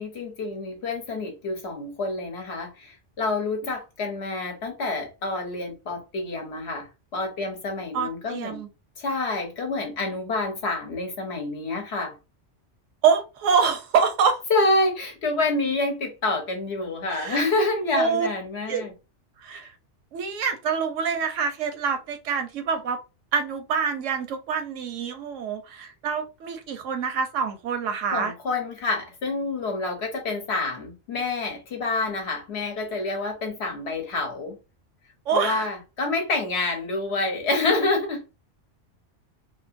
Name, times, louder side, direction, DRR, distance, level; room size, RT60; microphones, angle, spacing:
voice 1, 0.0-6.9 7.1-8.6 9.0-12.2 14.5-18.9 28.1-34.6 35.3-38.2, left 2 dB, 65° left, 1.2 m, -27 dB
voice 2, 7.9-8.7 13.0-14.4 17.1-17.4 17.9-18.3 18.7-18.8 19.4-19.7 20.1-23.0 23.3-28.3 35.3-35.7, right 6 dB, 85° right, 1.0 m, -26 dB
3.0 x 2.8 x 2.5 m
omnidirectional pair, 1.2 m